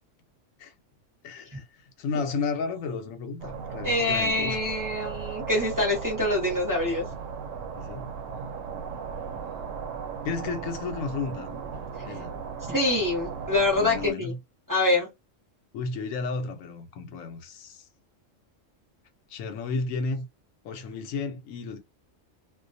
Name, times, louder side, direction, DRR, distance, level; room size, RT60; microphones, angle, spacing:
voice 1, 1.2-1.6 2.0-4.6 7.7-8.2 10.2-11.6 12.0-12.4 13.7-14.4 15.7-17.8 19.3-20.2 20.6-21.8, left 4 dB, 85° left, 1.0 m, -33 dB
sound 1, 3.4-14.1, right 6 dB, 75° right, 0.9 m, -37 dB
voice 2, 3.8-7.0 12.7-14.3 14.7-15.1, left 2 dB, 20° right, 0.7 m, -25 dB
2.3 x 2.2 x 2.6 m
omnidirectional pair, 1.3 m